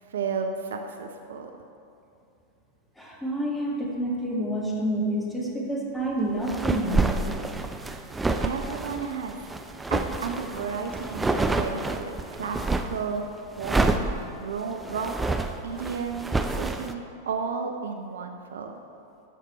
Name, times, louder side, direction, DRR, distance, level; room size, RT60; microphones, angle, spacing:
voice 1, 0.1-1.5 7.9-9.5 9.9-13.3 13.6-14.0 14.4-15.3 15.6-18.8, right 5 dB, 65° right, 5 dB, 0.6 m, -33 dB
voice 2, 3.0-7.2 7.5-8.0, right 1 dB, 5° left, -3 dB, 1.9 m, -29 dB
sound 1, 6.4-13.0 13.6-16.9, right 3 dB, 10° right, 0.5 m, -28 dB
12.0 x 6.7 x 4.2 m, 2.6 s
figure-of-eight pair, 90°, 0 cm